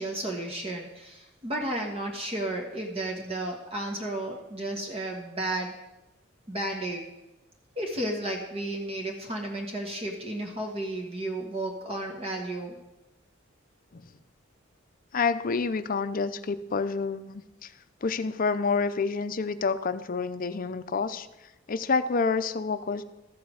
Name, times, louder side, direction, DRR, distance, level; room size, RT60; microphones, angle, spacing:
voice 1, 0.0-5.7 6.5-7.0 7.7-12.8, right 1 dB, 30° right, 1 dB, 1.3 m, -33 dB
voice 2, 15.1-17.7 18.0-21.3 21.7-23.0, left 4 dB, 45° left, 12 dB, 0.5 m, -28 dB
13.5 x 5.7 x 6.3 m, 0.97 s
head